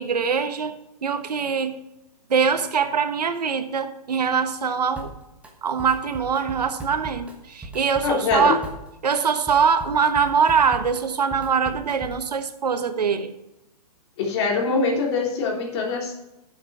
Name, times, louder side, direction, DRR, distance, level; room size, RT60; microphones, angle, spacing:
voice 1, 0.0-1.8 2.3-5.1 5.6-8.7 9.0-13.3, right 6 dB, 85° right, 10 dB, 1.2 m, -23 dB
Drum kit, 5.0-5.5 5.8-12.3, right 2 dB, 5° right, 1.2 m, -39 dB
voice 2, 8.0-8.5 14.2-16.1, left 4 dB, 45° left, 0 dB, 3.0 m, -23 dB
10.5 x 7.2 x 4.7 m, 0.93 s
hypercardioid pair, 145°, 20 cm